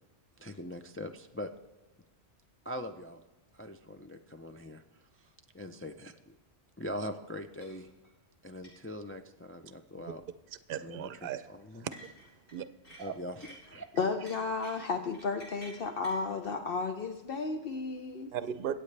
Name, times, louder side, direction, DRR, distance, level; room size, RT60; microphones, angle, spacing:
voice 1, 0.4-1.5 2.6-3.2 3.5-4.8 5.2-6.4 6.8-7.9 8.4-10.2 10.7-11.1 11.5-11.9 13.0-13.9 14.2-14.3, left 1 dB, 20° left, 5 dB, 0.3 m, -42 dB
sound 1, 7.6-8.1 8.6-8.7 9.9-10.2 11.9-12.5 12.8-13.8 14.3-16.2, equal, 80° left, 5.2 m, -52 dB
voice 2, 10.7-11.5 11.7-11.9 12.5-13.2 18.3-18.7, right 9 dB, 60° right, 13 dB, 0.7 m, -37 dB
voice 3, 14.0-18.3, left 4 dB, 60° left, 5 dB, 0.9 m, -33 dB
23.5 x 8.4 x 3.3 m, 1.1 s
omnidirectional pair, 1.1 m